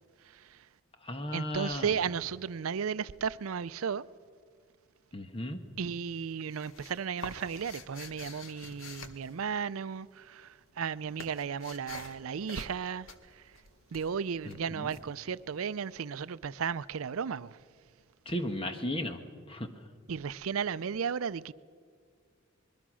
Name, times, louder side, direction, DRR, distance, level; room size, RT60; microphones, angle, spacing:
voice 1, 0.2-0.7 1.3-4.1 5.8-13.5 13.9-17.6 20.1-21.5, right 6 dB, 85° right, 0.5 m, -35 dB
voice 2, 1.0-1.9 5.1-5.6 14.4-14.9 18.2-19.2 19.5-19.7, left 1 dB, 25° left, 1.4 m, -35 dB
sound 1, 5.3-5.8 6.1-10.1 10.4-16.0, left 4 dB, 80° left, 1.6 m, -48 dB
25.0 x 21.5 x 6.3 m
head